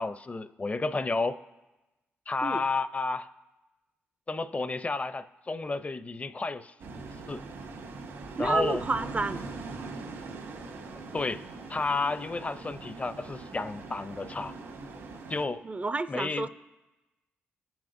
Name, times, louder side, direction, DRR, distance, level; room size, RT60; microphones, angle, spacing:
voice 1, 0.0-1.4 2.3-3.3 4.3-7.4 8.4-8.8 10.9-11.4 11.7-14.5 15.3-15.6 16.1-16.5, left 3 dB, 30° left, 13 dB, 0.5 m, -31 dB
sound 1, 6.8-15.5, right 3 dB, 85° right, 1.5 m, -41 dB
voice 2, 8.4-9.4 15.6-16.5, right 3 dB, 30° right, 13 dB, 0.4 m, -30 dB
16.0 x 6.0 x 2.6 m, 1.1 s
supercardioid pair, 50°, 5 cm